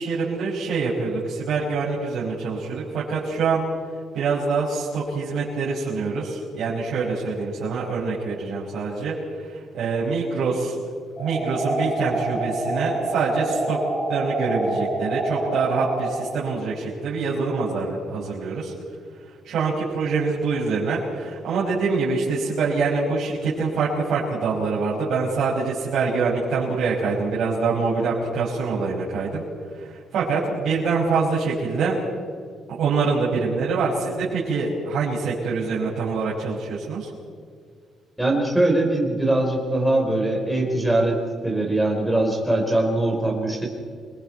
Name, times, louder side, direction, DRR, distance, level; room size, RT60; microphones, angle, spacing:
voice 1, 0.0-3.7 4.1-10.8 11.2-13.8 14.1-18.7 19.4-29.4 29.7-32.0 32.7-37.1, right 4 dB, 60° right, -8 dB, 5.4 m, -25 dB
sound 1, 11.2-16.2, right 2 dB, 15° left, 4.8 m, -27 dB
voice 2, 38.2-43.7, right 1 dB, ahead, -2 dB, 4.4 m, -22 dB
29.0 x 21.5 x 4.6 m, 2.1 s
cardioid pair, 165°, 0 cm